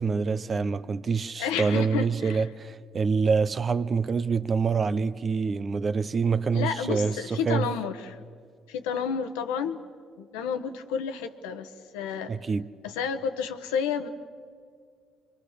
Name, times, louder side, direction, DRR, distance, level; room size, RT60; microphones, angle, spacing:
voice 1, 0.0-7.7 12.3-12.7, right 5 dB, 45° right, 0.9 m, -26 dB
voice 2, 1.4-2.5 6.5-8.2 8.7-9.8 10.2-12.3 12.8-14.1, left 7 dB, 90° left, 1.2 m, -31 dB
27.5 x 24.0 x 6.7 m
hypercardioid pair, 55°, 0 cm